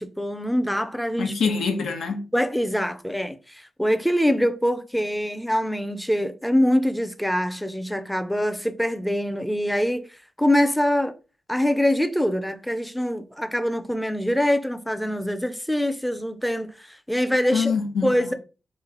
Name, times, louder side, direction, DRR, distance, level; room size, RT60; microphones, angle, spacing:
voice 1, 0.0-1.3 2.3-11.1 11.5-17.7 18.0-18.3, equal, 5° left, 0.4 m, -24 dB
voice 2, 1.2-2.3 17.5-18.3, left 5 dB, 90° left, 0.9 m, -25 dB
3.5 x 3.1 x 3.8 m
wide cardioid pair, 110°, 0 cm